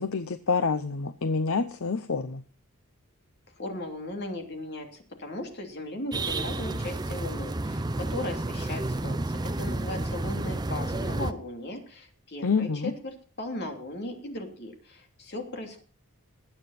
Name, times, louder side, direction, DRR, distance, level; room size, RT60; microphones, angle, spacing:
voice 1, 0.0-2.4 12.4-12.9, left 4 dB, 65° left, 12 dB, 0.7 m, -27 dB
voice 2, 3.6-15.8, left 1 dB, 50° left, 3 dB, 2.9 m, -37 dB
sound 1, 6.1-11.3, right 2 dB, 20° right, 0.6 m, -31 dB
20.0 x 8.9 x 4.2 m, 0.38 s
head